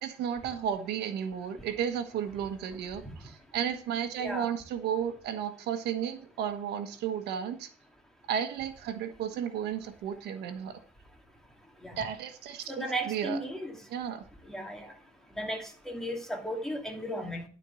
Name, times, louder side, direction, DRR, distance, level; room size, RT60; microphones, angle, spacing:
voice 1, 0.0-7.7 8.3-10.8 12.0-13.4 13.9-14.2, right 8 dB, 75° right, 8 dB, 1.3 m, -33 dB
voice 2, 4.2-4.5 11.8-12.0 12.7-13.8 14.4-14.9 15.3-17.4, right 1 dB, 5° left, 2 dB, 2.5 m, -35 dB
12.5 x 4.6 x 7.0 m, 0.43 s
cardioid pair, 110°, 17 cm